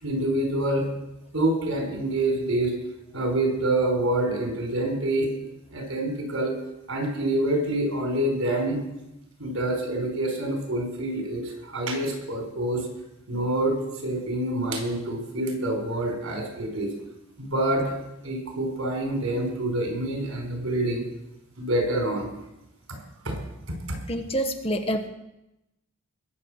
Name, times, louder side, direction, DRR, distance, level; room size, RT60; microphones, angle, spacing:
voice 1, 0.0-0.9 1.3-2.8 3.1-5.3 5.7-6.5 6.9-8.8 9.4-12.9 13.3-13.8 14.0-16.9 17.4-17.9 18.2-21.1 21.6-22.3 22.9-23.0 23.2-23.4 23.7-23.8, right 1 dB, 85° right, 2 dB, 4.9 m, -26 dB
voice 2, 24.1-25.1, right 1 dB, 25° left, 5 dB, 1.1 m, -27 dB
21.5 x 7.5 x 6.4 m, 0.90 s
head